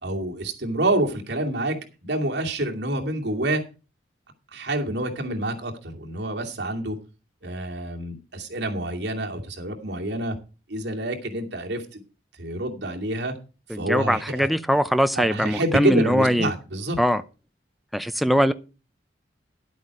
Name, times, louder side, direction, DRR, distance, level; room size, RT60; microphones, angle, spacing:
voice 1, 0.0-3.6 4.5-7.0 7.4-10.4 10.7-12.0 12.4-13.3 13.7-14.5 15.2-17.0, right 1 dB, 65° right, 2.5 m, -27 dB
voice 2, 13.7-16.5 17.0-17.2 17.9-18.5, equal, ahead, 0.5 m, -21 dB
11.5 x 8.3 x 4.8 m
head